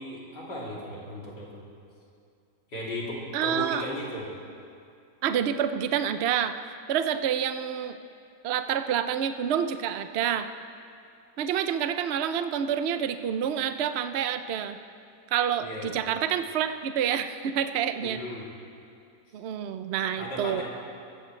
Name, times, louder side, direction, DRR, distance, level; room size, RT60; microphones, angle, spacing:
voice 1, 0.0-1.6 2.7-4.2 15.6-16.2 18.0-18.4 20.2-20.6, left 1 dB, 75° left, -5 dB, 3.6 m, -36 dB
voice 2, 3.3-3.8 5.2-8.0 8.4-10.5 11.4-14.8 15.3-18.2 19.3-20.6, right 9 dB, 75° right, 9 dB, 0.6 m, -28 dB
21.5 x 15.0 x 3.2 m, 2.4 s
omnidirectional pair, 1.9 m